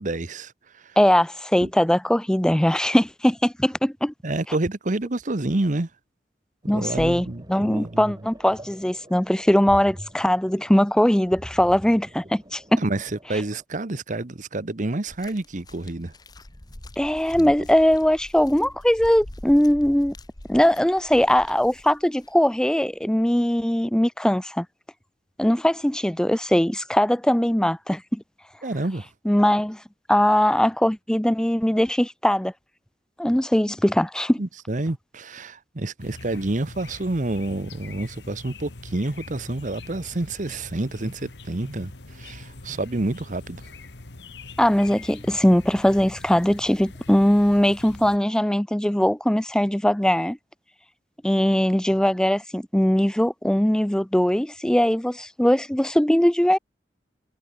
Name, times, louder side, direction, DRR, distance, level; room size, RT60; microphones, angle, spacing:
voice 1, 0.0-1.0 1.6-1.7 4.2-5.9 6.7-8.1 12.8-16.1 17.3-17.5 28.6-29.1 34.4-43.6, right 2 dB, 45° right, 1.1 m, -28 dB
voice 2, 1.0-4.1 6.7-12.8 17.0-20.1 20.5-24.7 25.4-28.2 29.3-29.8 30.1-32.5 33.2-34.4 44.6-50.4 51.2-56.6, equal, 5° left, 0.5 m, -20 dB
sound 1, 6.6-13.6, equal, 25° right, 4.2 m, -43 dB
sound 2, 15.1-22.3 23.2-23.3, left 1 dB, 25° left, 1.2 m, -44 dB
sound 3, 36.0-48.2, left 2 dB, 75° left, 1.6 m, -43 dB
head